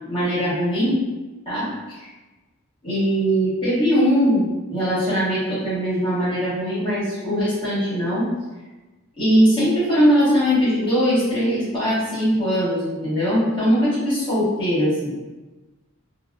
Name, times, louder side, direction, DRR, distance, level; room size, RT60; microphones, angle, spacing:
voice 1, 0.1-1.0 1.4-1.7 2.0-2.1 2.8-8.3 9.2-15.1, equal, 25° left, -12 dB, 1.1 m, -20 dB
3.4 x 2.1 x 2.2 m, 1.2 s
head